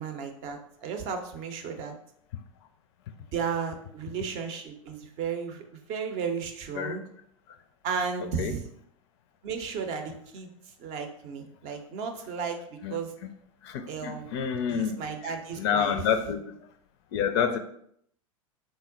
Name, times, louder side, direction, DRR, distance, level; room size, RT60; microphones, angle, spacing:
voice 1, 0.0-2.0 3.3-7.0 7.8-8.7 9.4-10.5 10.8-13.1 13.9-14.3 14.7-16.0, right 6 dB, 40° right, 5 dB, 0.6 m, -34 dB
voice 2, 13.6-15.0 15.2-16.5 17.1-17.6, left 7 dB, 50° left, 10 dB, 0.4 m, -28 dB
3.7 x 2.0 x 3.8 m, 0.68 s
figure-of-eight pair, 90°, 18 cm